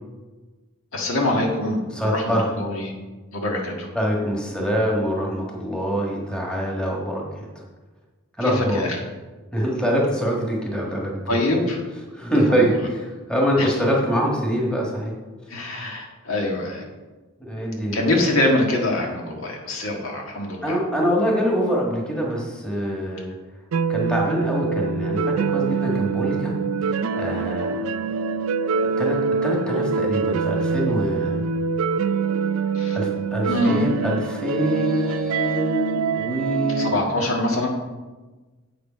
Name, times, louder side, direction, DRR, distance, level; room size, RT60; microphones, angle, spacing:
voice 1, 0.9-2.9 3.3-3.9 8.4-9.0 11.3-11.8 12.5-12.7 13.6-13.7 15.5-16.8 17.9-20.8 32.7-33.0 33.5-33.8 36.8-37.7, left 1 dB, 75° left, 0 dB, 1.7 m, -24 dB
voice 2, 1.9-2.4 3.9-7.5 8.4-8.8 9.5-11.4 12.1-15.1 17.4-18.0 20.6-23.3 23.9-26.6 26.9-27.8 29.0-31.4 32.9-36.9, equal, 5° left, -3 dB, 1.5 m, -24 dB
sound 1, 23.7-37.0, right 5 dB, 85° right, 0.4 m, -24 dB
7.8 x 6.7 x 5.1 m, 1.3 s
head